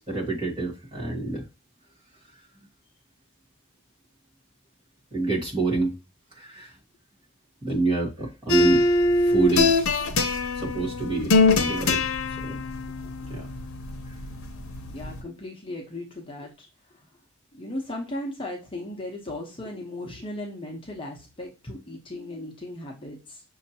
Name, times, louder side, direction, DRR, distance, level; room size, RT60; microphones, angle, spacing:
voice 1, 0.0-1.4 5.1-6.0 6.4-6.7 7.6-8.8 9.2-9.9 10.6-12.0 12.4-12.6 13.3-13.5, right 3 dB, 25° right, -4 dB, 1.5 m, -27 dB
sound 1, 8.5-15.2, left 2 dB, 85° left, 0.7 m, -23 dB
voice 2, 14.9-16.7 17.5-23.4, left 1 dB, 25° left, 0 dB, 0.9 m, -36 dB
6.5 x 2.8 x 2.8 m, 0.28 s
head